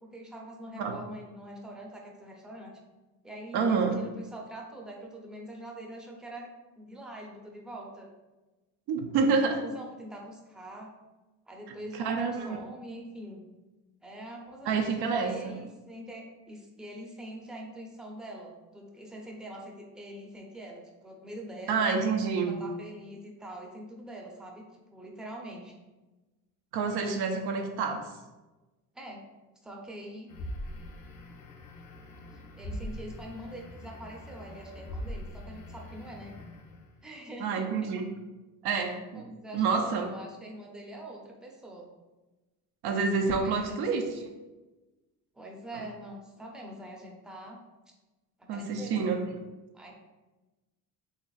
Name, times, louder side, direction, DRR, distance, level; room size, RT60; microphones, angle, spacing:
voice 1, 0.0-2.8 3.2-6.5 6.8-8.1 9.2-10.9 11.5-13.4 14.0-14.8 15.1-21.9 22.4-25.7 28.9-29.2 29.6-30.3 32.6-36.4 37.0-37.9 39.1-41.9 43.4-43.9 45.3-47.6 48.5-49.1 49.7-49.9, right 1 dB, ahead, -1 dB, 0.7 m, -44 dB
voice 2, 3.5-4.0 8.9-9.6 11.9-12.6 14.7-15.5 21.7-22.6 26.7-28.1 37.4-38.1 38.6-39.2 39.5-40.1 42.8-44.1 48.5-49.3, right 5 dB, 70° right, 3 dB, 0.6 m, -28 dB
sound 1, 30.3-37.0, left 1 dB, 50° left, 0.7 m, -42 dB
4.1 x 2.9 x 2.4 m, 1.1 s
supercardioid pair, 75°, 40 cm